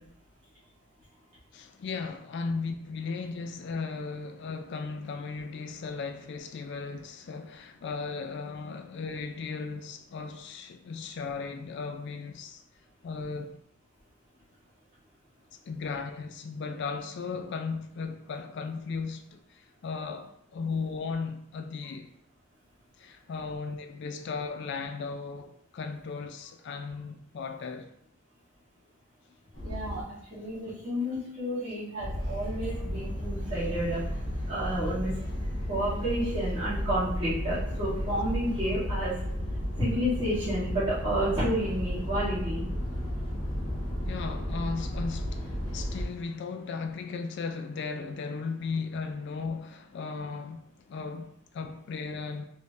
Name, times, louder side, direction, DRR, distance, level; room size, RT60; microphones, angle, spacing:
voice 1, 1.5-12.6 13.0-13.6 15.6-22.1 23.0-27.9 44.1-52.4, left 4 dB, 55° left, 0.3 m, -36 dB
sound 1, 29.5-30.0 32.0-46.1, equal, 85° left, 1.1 m, -33 dB
voice 2, 29.6-34.0 34.5-35.1 35.7-39.1 39.8-42.7, equal, 25° right, 1.4 m, -30 dB
3.4 x 3.1 x 2.7 m
head